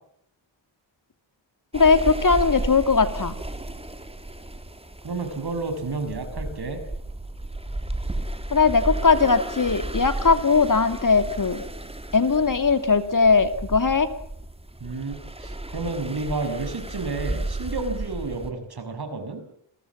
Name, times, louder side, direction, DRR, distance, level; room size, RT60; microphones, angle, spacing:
voice 1, 1.7-3.3 8.5-11.6 12.1-14.1, left 4 dB, 45° left, 10 dB, 2.5 m, -19 dB
sound 1, 1.7-18.5, right 1 dB, 15° right, 3.1 m, -33 dB
voice 2, 5.0-6.8 14.8-19.4, right 3 dB, 55° right, 7 dB, 6.7 m, -31 dB
29.0 x 22.0 x 7.3 m, 0.70 s
wide cardioid pair, 135°, 46 cm